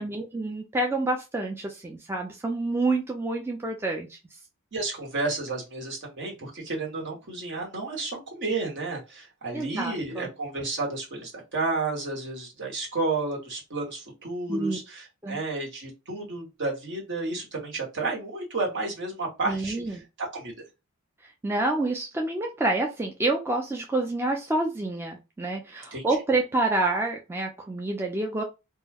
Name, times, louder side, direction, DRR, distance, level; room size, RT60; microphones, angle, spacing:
voice 1, 0.0-4.2 9.5-10.3 14.5-14.8 15.2-15.4 19.5-20.0 21.4-28.4, right 2 dB, 10° right, 1 dB, 0.3 m, -28 dB
voice 2, 4.7-20.0 20.3-20.5 25.9-26.0, right 3 dB, 55° right, -1 dB, 1.1 m, -31 dB
2.3 x 2.1 x 3.3 m, 0.26 s
head